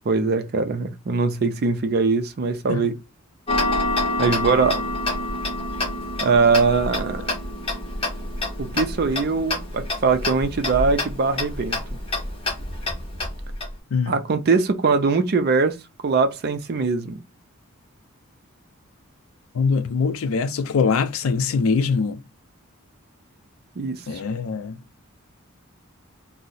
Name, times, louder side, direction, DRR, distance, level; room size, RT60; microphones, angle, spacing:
voice 1, 0.1-3.0 4.2-4.8 6.2-7.3 8.6-11.8 14.1-15.8 16.0-17.2 23.8-24.0, right 4 dB, 45° right, 0.4 m, -21 dB
Tick-tock, 3.5-13.7, left 2 dB, 25° left, 0.9 m, -27 dB
voice 2, 19.5-22.2 24.1-24.8, left 5 dB, 70° left, 0.4 m, -22 dB
2.7 x 2.0 x 3.9 m
head